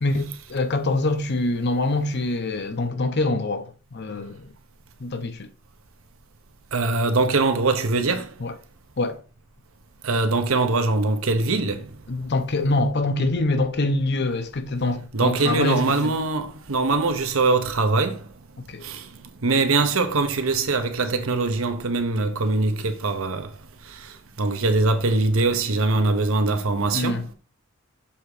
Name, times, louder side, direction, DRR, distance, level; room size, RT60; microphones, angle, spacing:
voice 1, 0.0-4.5 5.0-5.5 8.4-8.5 9.0-9.2 12.1-16.1 18.7-18.8 26.9-27.2, left 2 dB, 55° left, 0.8 m, -25 dB
voice 2, 6.7-8.3 10.0-11.9 15.1-18.2 18.8-19.0 19.4-23.5 24.4-27.2, right 3 dB, 85° right, 1.0 m, -22 dB
7.1 x 3.5 x 4.9 m
head